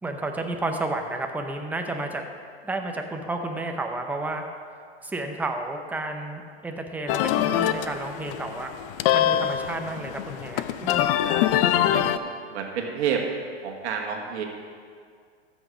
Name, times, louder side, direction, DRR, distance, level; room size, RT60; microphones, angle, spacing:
voice 1, 0.0-2.2 2.6-4.4 5.0-8.7 9.1-11.1, right 2 dB, 5° right, 3 dB, 0.7 m, -31 dB
sound 1, 7.1-12.2, left 11 dB, 55° left, 0.6 m, -24 dB
voice 2, 11.2-11.6 11.8-13.2 13.6-14.4, right 7 dB, 75° right, 1 dB, 1.6 m, -30 dB
14.0 x 6.2 x 5.1 m, 2.1 s
hypercardioid pair, 125°, 33 cm